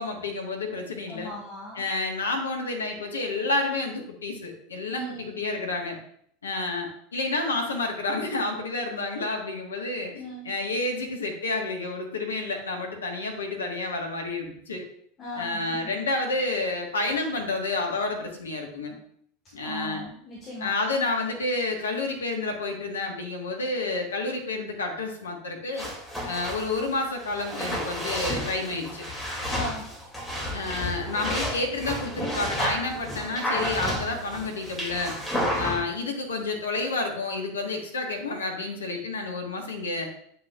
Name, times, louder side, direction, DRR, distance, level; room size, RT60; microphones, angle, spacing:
voice 1, 0.0-1.3 1.7-6.0 6.4-14.8 15.4-18.9 19.5-20.0 20.6-25.9 26.2-29.0 30.5-35.1 35.6-40.1, left 3 dB, 75° left, 2 dB, 1.4 m, -30 dB
voice 2, 1.1-1.8 4.9-5.3 10.2-10.5 15.2-15.8 19.6-20.7 29.5-29.8, left 1 dB, 30° left, -4 dB, 1.9 m, -37 dB
sound 1, 25.8-35.8, equal, 5° left, 2.4 m, -31 dB
8.2 x 5.6 x 2.4 m, 0.66 s
figure-of-eight pair, 80°, 0 cm